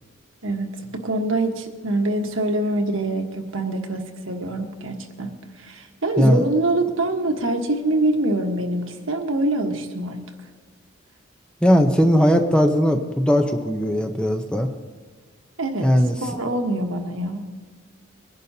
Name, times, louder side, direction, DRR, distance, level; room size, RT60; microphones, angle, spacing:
voice 1, 0.4-5.3 5.6-10.2 15.6-15.9 16.2-17.4, right 2 dB, 85° right, 4 dB, 1.4 m, -24 dB
voice 2, 11.6-14.7 15.8-16.2, equal, 5° left, 5 dB, 0.7 m, -18 dB
22.5 x 11.0 x 2.8 m, 1.5 s
head